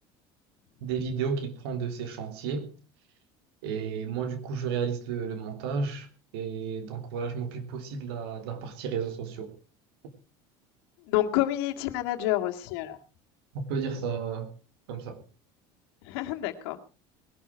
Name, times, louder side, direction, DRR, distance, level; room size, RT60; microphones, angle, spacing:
voice 1, 0.8-2.7 3.6-6.1 6.3-9.5 13.5-14.5 14.9-15.2, right 6 dB, 90° right, 3.2 m, -32 dB
voice 2, 11.1-13.0 16.1-16.8, left 14 dB, 80° left, 2.1 m, -28 dB
20.0 x 12.0 x 4.6 m
supercardioid pair, 120°, 13 cm